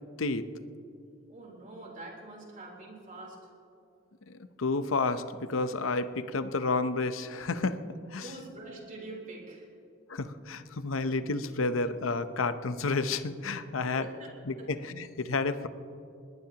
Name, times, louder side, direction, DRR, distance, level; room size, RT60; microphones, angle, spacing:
voice 1, 1.3-3.4 8.2-9.7 13.9-14.3, right 2 dB, 40° right, -2 dB, 3.7 m, -45 dB
voice 2, 4.3-7.8 8.1-8.3 10.1-14.1 14.5-15.7, left 3 dB, 80° left, 11 dB, 0.8 m, -31 dB
21.0 x 19.0 x 2.9 m, 2.6 s
head